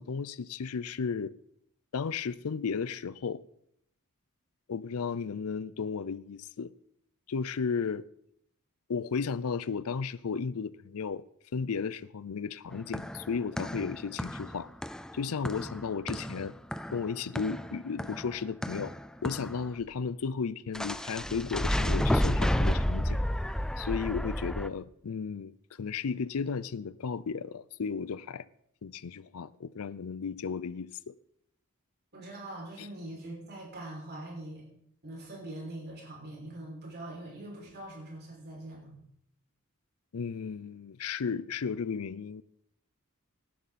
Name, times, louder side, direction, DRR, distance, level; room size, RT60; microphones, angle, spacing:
voice 1, 0.0-1.3 1.9-3.4 4.7-6.7 7.3-8.0 8.9-11.2 11.5-14.7 15.1-16.5 16.9-18.9 19.2-23.2 23.8-28.4 28.8-31.1 32.8-32.9 40.1-42.4, left 5 dB, 70° left, 0.5 m, -34 dB
sound 1, 12.7-19.7 20.7-24.7, equal, 5° left, 0.4 m, -31 dB
voice 2, 32.1-34.6 35.0-39.0, right 1 dB, 50° right, 6.0 m, -43 dB
18.0 x 11.0 x 4.2 m
head